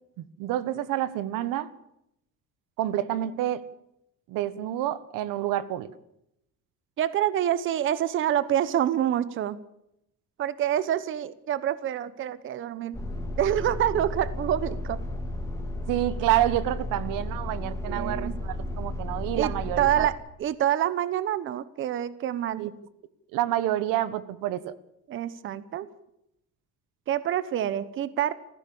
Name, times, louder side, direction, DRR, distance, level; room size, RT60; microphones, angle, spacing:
voice 1, 0.4-1.7 2.8-3.6 4.3-5.9 15.9-20.1 22.6-22.7 23.3-24.7, right 13 dB, 85° right, 16 dB, 1.5 m, -28 dB
voice 2, 7.0-9.6 10.4-13.0 13.4-15.0 17.9-18.4 19.4-20.1 20.4-22.7 25.1-25.9 27.1-28.3, right 11 dB, 40° right, 16 dB, 1.0 m, -27 dB
sound 1, 12.9-20.1, left 1 dB, 10° left, 2.7 m, -33 dB
29.5 x 15.5 x 7.1 m, 0.83 s
cardioid pair, 175°, 31 cm